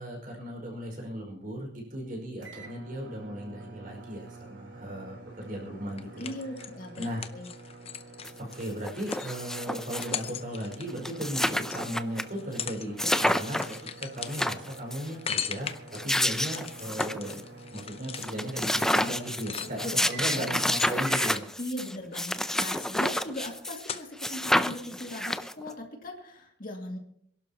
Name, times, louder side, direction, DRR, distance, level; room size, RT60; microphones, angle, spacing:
voice 1, 0.0-6.3 7.0-7.3 8.4-17.4 17.7-21.4, equal, 45° right, 1 dB, 5.3 m, -36 dB
sound 1, 2.4-20.6 21.0-21.4, right 3 dB, 90° right, 3.9 m, -47 dB
sound 2, 6.0-11.8 12.3-12.9 13.1-20.1 20.5-21.8 22.1-24.4 24.6-24.7, left 8 dB, 35° left, 0.7 m, -39 dB
voice 2, 6.2-7.1 7.3-7.5 19.6-20.6 21.6-27.0, left 1 dB, 50° left, 1 dB, 2.3 m, -39 dB
sound 3, 8.2-8.3 8.6-10.3 10.7-10.8 11.0-12.2 12.6-12.7 13.0-13.8 14.2-15.1 15.8-17.4 17.8-17.9 18.2-23.9 24.2-25.7, left 1 dB, 5° left, 0.5 m, -29 dB
27.0 x 12.0 x 2.9 m, 0.68 s
head